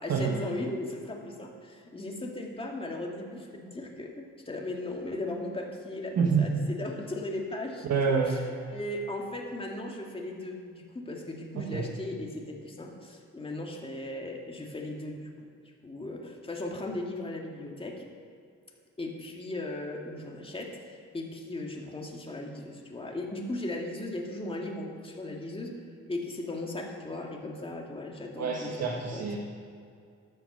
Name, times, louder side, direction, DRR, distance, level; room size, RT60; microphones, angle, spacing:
voice 1, 0.0-7.9 8.3-8.4 8.7-15.3 15.8-18.0 19.0-25.7 26.1-29.2, left 2 dB, 20° left, 0 dB, 2.3 m, -37 dB
voice 2, 6.2-6.6 7.8-8.4 11.5-11.9 28.4-29.4, right 5 dB, 60° right, 0 dB, 1.6 m, -27 dB
13.5 x 9.0 x 6.8 m, 2.3 s
cardioid pair, 90°, 30 cm